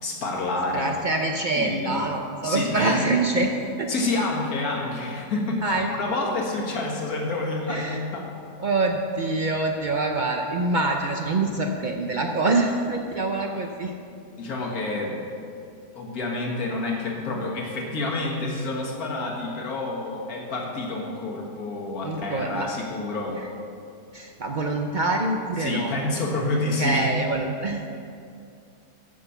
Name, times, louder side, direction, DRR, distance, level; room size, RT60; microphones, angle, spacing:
voice 1, 0.0-1.0 1.6-2.0 2.4-3.0 3.9-8.3 13.4-13.6 14.4-15.2 16.0-23.5 25.6-27.1, left 2 dB, 65° left, -1 dB, 2.1 m, -28 dB
voice 2, 0.7-3.9 5.6-5.9 7.7-8.0 8.6-13.9 22.0-22.7 24.1-25.9 26.8-27.8, right 2 dB, 70° right, 3 dB, 0.4 m, -25 dB
8.3 x 8.0 x 7.0 m, 2.5 s
omnidirectional pair, 1.7 m